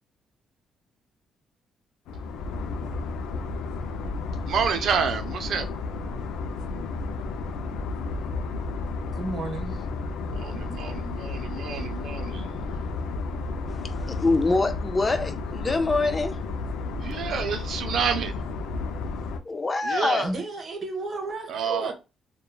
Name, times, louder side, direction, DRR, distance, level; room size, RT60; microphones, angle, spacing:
sound 1, 2.1-19.4, left 3 dB, 90° left, 0.3 m, -32 dB
voice 1, 4.5-5.7 10.3-12.6 17.0-18.4 19.8-20.3 21.5-21.9, right 6 dB, 70° right, 0.4 m, -29 dB
voice 2, 9.1-9.8 20.2-21.9, right 2 dB, 45° right, 0.8 m, -33 dB
voice 3, 13.7-16.4 19.4-20.3, left 3 dB, 25° left, 0.4 m, -25 dB
3.0 x 2.2 x 2.2 m
cardioid pair, 90°, 0 cm